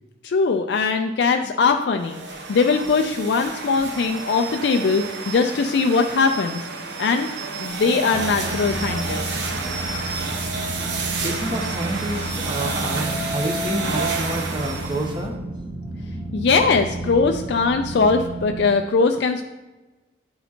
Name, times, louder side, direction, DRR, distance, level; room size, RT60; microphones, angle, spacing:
voice 1, 0.2-2.2 2.5-6.7 7.0-7.3 7.6-9.2 16.3-19.4, left 4 dB, 65° left, 5 dB, 0.4 m, -20 dB
sound 1, 2.0-15.2, right 3 dB, 70° right, 0.9 m, -30 dB
sound 2, 8.1-18.7, right 2 dB, 5° left, 0.7 m, -32 dB
voice 2, 11.0-15.4, right 1 dB, 25° right, 2 dB, 0.8 m, -28 dB
10.0 x 4.2 x 2.9 m, 1.1 s
head